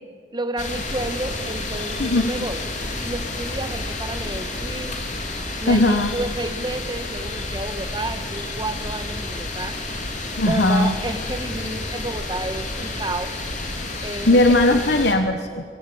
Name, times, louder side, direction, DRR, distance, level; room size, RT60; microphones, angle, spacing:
voice 1, 0.3-2.6 3.0-5.0 5.6-10.1 10.4-13.3 14.0-14.5, right 2 dB, 25° right, 9 dB, 1.5 m, -31 dB
sound 1, 0.6-15.1, left 2 dB, 40° left, 3.6 m, -30 dB
voice 2, 5.7-6.1 10.4-10.9 14.3-15.6, left 1 dB, 65° left, 6 dB, 1.3 m, -18 dB
25.0 x 23.0 x 8.6 m, 2.4 s
head